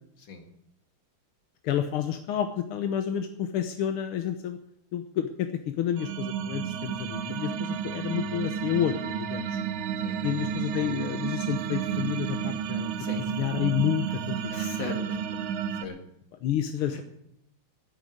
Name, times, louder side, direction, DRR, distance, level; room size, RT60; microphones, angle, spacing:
voice 1, 1.6-4.6 4.9-9.6 10.2-14.7 16.4-17.0, left 10 dB, 85° left, 8 dB, 1.8 m, -30 dB
sound 1, 6.0-15.9, right 8 dB, 70° right, 1.6 m, -31 dB
voice 2, 14.5-15.4 15.8-16.0 16.9-17.0, left 4 dB, 60° left, 5 dB, 2.7 m, -38 dB
11.5 x 9.4 x 9.2 m, 0.75 s
omnidirectional pair, 2.3 m